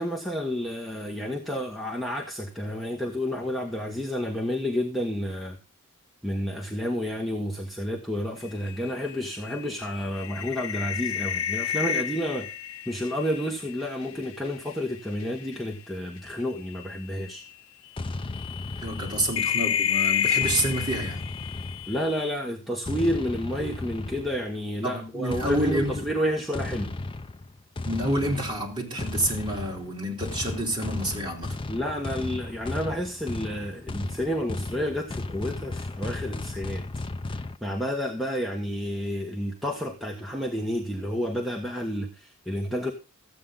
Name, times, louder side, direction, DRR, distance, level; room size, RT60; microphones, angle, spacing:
voice 1, 0.0-5.6 6.2-12.5 12.9-17.4 21.9-26.9 31.7-36.8 37.6-42.9, equal, ahead, -1 dB, 1.1 m, -30 dB
sound 1, 8.5-14.8 15.1-15.6 16.7-16.8 17.3-17.4 18.3-22.3, left 8 dB, 70° left, 0.6 m, -30 dB
sound 2, 18.0-19.7 20.4-22.1 22.9-24.5 25.3-37.6, left 2 dB, 25° left, 0.5 m, -35 dB
voice 2, 18.8-21.2 24.8-25.9 27.8-31.6, right 1 dB, 25° right, -2 dB, 3.8 m, -28 dB
14.0 x 8.6 x 3.8 m, 0.33 s
head